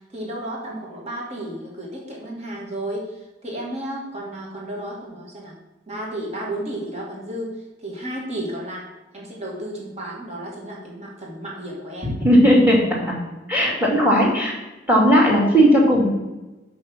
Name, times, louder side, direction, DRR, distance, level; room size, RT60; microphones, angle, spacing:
voice 1, 0.1-3.1 3.4-5.5 5.9-7.5 7.8-8.8 9.1-12.1, right 1 dB, 35° right, -3 dB, 2.1 m, -32 dB
voice 2, 12.2-12.8 13.1-13.2 13.5-14.5 14.9-16.1, equal, 10° right, -3 dB, 2.4 m, -16 dB
6.3 x 5.5 x 6.2 m, 1.1 s
head